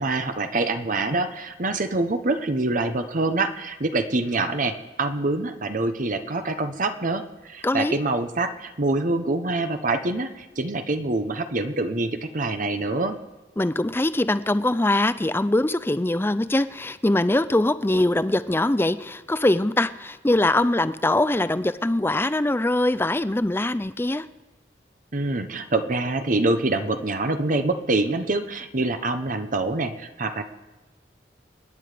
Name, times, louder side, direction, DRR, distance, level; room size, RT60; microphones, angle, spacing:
voice 1, 0.0-13.2 25.1-30.4, right 2 dB, 50° right, 8 dB, 1.0 m, -25 dB
voice 2, 7.6-8.0 13.6-24.3, left 1 dB, 15° left, 14 dB, 0.5 m, -22 dB
29.0 x 9.6 x 5.1 m, 1.1 s
head